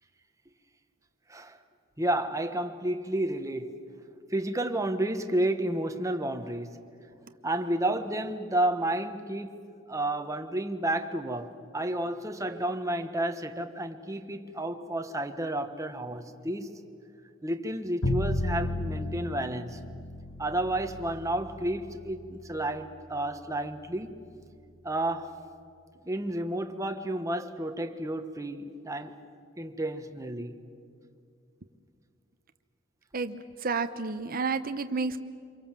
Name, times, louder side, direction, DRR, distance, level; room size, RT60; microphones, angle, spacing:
voice 1, 2.0-3.7 4.3-6.8 7.4-9.6 9.9-16.7 17.4-19.8 20.4-24.2 24.8-25.3 26.0-29.1 29.6-30.6, right 1 dB, 15° right, 1.2 m, -31 dB
Bowed string instrument, 18.0-24.1, left 1 dB, 80° left, 1.4 m, -35 dB
voice 2, 33.1-35.2, right 4 dB, 45° right, 0.9 m, -31 dB
27.0 x 23.5 x 7.5 m
head